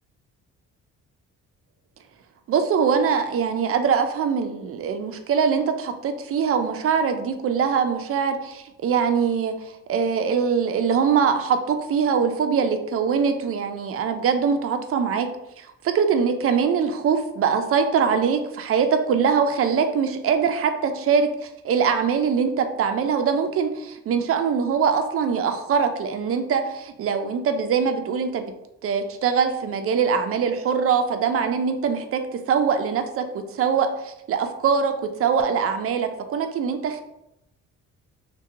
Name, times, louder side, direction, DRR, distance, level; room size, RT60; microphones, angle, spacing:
voice 1, 2.5-9.5 9.9-15.3 15.6-28.5 28.8-33.3 33.5-34.9 35.2-37.0, right 6 dB, 50° right, 7 dB, 0.5 m, -23 dB
2.7 x 2.2 x 3.6 m, 0.84 s
cardioid pair, 90°, 30 cm